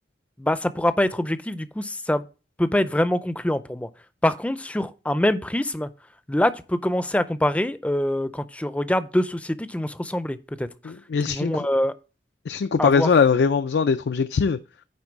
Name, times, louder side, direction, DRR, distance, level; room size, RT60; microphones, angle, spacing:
voice 1, 0.4-2.3 2.6-3.9 4.2-5.9 6.3-10.9 11.3-11.9 12.8-13.1, left 1 dB, 10° left, 0.4 m, -24 dB
voice 2, 10.9-11.5 12.5-14.6, left 5 dB, 75° left, 0.4 m, -21 dB
9.7 x 3.7 x 6.0 m
head